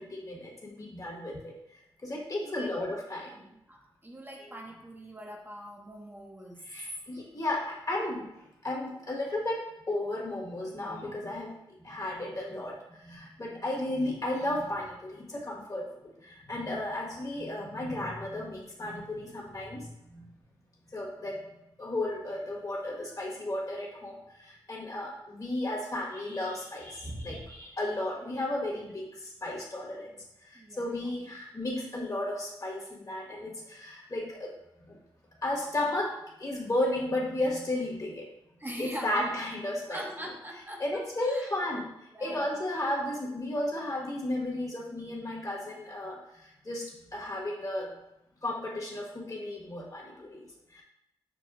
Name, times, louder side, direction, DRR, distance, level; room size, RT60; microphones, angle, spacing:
voice 1, 0.0-1.5 2.0-3.3 4.4-4.5 6.6-8.3 8.6-11.5 11.8-20.3 20.9-21.5 21.8-30.1 30.5-34.6 34.8-35.0 35.4-36.1 36.4-38.2 38.8-40.1 40.8-41.9 42.2-47.9 48.4-50.8, left 1 dB, 35° left, -3 dB, 1.3 m, -34 dB
voice 2, 3.3-6.6 30.5-31.1 38.6-39.3 39.9-41.5 42.1-42.5, equal, 20° right, -1 dB, 0.7 m, -43 dB
6.0 x 2.3 x 2.4 m, 0.84 s
supercardioid pair, 45°, 10 cm